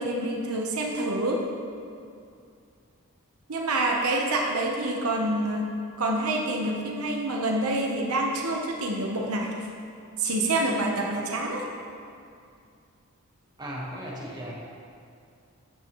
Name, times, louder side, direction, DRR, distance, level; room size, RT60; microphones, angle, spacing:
voice 1, 0.0-1.4 3.5-5.7 6.0-9.5 10.2-11.7, right 1 dB, 85° right, -1 dB, 1.0 m, -27 dB
voice 2, 13.6-14.5, equal, 20° right, -3 dB, 1.3 m, -36 dB
12.5 x 8.9 x 3.1 m, 2.4 s
head